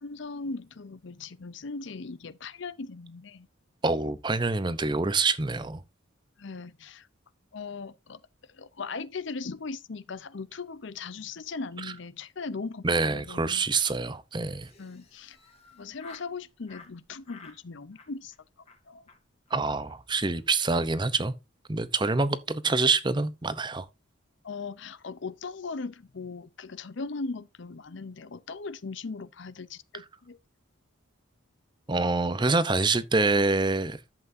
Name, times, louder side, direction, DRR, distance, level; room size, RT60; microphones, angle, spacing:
voice 1, 0.0-3.5 6.4-7.1 7.5-8.2 8.5-13.6 14.8-15.4 15.7-18.3 18.9-19.0 24.4-30.4, left 4 dB, 60° left, 0.6 m, -39 dB
voice 2, 3.8-5.8 11.8-11.9 12.8-14.7 19.5-21.3 21.7-23.9 31.9-34.0, right 3 dB, 20° right, 0.6 m, -26 dB
Laughter, 14.5-16.3 16.7-16.9 17.2-17.6 17.9-18.4 18.7-18.8 19.1-19.2 19.5-19.6 19.8-20.0 20.2-20.5, left 5 dB, 30° left, 2.1 m, -52 dB
11.5 x 7.9 x 2.6 m
head